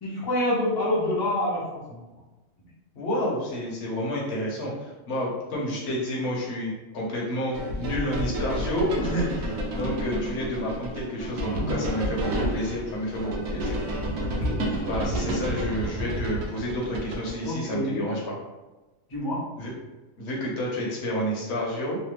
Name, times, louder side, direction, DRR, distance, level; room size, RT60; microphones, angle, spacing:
voice 1, 0.0-2.0 9.8-10.2 14.1-15.1 17.4-18.1 19.1-19.4, left 1 dB, 25° left, -5 dB, 0.6 m, -28 dB
voice 2, 3.0-13.8 14.8-18.3 19.6-19.7 20.2-22.0, equal, 55° left, -3 dB, 1.1 m, -30 dB
sound 1, 7.5-17.5, equal, 90° right, 1.0 m, -30 dB
3.2 x 2.0 x 3.2 m, 1.1 s
omnidirectional pair, 1.4 m